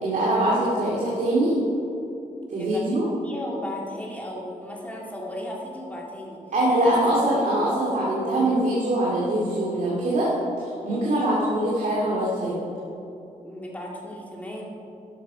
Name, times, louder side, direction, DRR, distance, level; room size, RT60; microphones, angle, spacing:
voice 1, 0.0-1.6 2.5-3.1 6.5-10.3 10.8-12.6, right 1 dB, 65° right, -6 dB, 2.5 m, -23 dB
voice 2, 2.6-3.0 3.2-6.4 6.8-6.9 7.6-7.7 13.4-14.7, left 1 dB, 10° left, -3 dB, 2.2 m, -35 dB
12.5 x 11.5 x 5.0 m, 2.9 s
wide cardioid pair, 145°, 14 cm